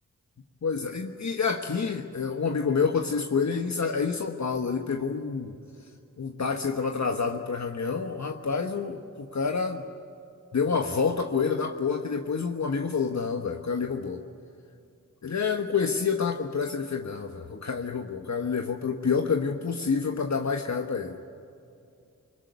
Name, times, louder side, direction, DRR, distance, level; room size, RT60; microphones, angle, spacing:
voice 1, 0.6-5.5 6.2-9.9 10.5-14.2 15.2-21.2, left 5 dB, 55° left, 5 dB, 1.3 m, -28 dB
22.5 x 21.0 x 9.4 m, 2.6 s
cardioid pair, 50°, 33 cm